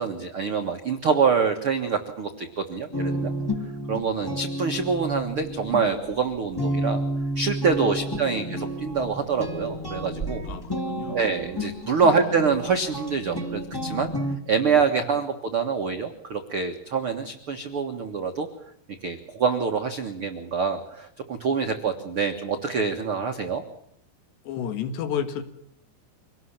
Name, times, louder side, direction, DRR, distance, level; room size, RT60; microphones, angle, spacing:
voice 1, 0.0-3.3 3.9-7.0 7.3-10.4 11.1-14.1 14.5-18.5 19.0-23.6, right 5 dB, 75° right, 5 dB, 1.2 m, -25 dB
sound 1, 2.9-14.3, equal, 10° left, 1.5 m, -31 dB
voice 2, 7.8-8.4 10.5-11.2 24.5-25.4, left 8 dB, 70° left, 9 dB, 3.9 m, -32 dB
25.5 x 18.5 x 7.3 m, 0.72 s
omnidirectional pair, 5.1 m